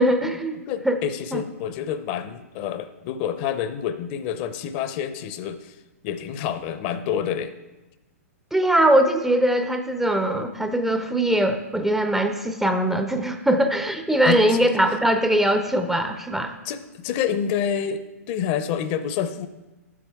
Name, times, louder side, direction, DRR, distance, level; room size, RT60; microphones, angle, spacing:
voice 1, 0.0-1.0 1.3-1.4 8.5-16.6, right 1 dB, 5° right, 7 dB, 0.5 m, -21 dB
voice 2, 0.7-5.8 6.0-7.5 14.2-14.6 16.6-18.0 18.3-19.5, left 8 dB, 40° left, 11 dB, 0.6 m, -28 dB
10.5 x 8.4 x 3.5 m, 1.1 s
hypercardioid pair, 120°, 8 cm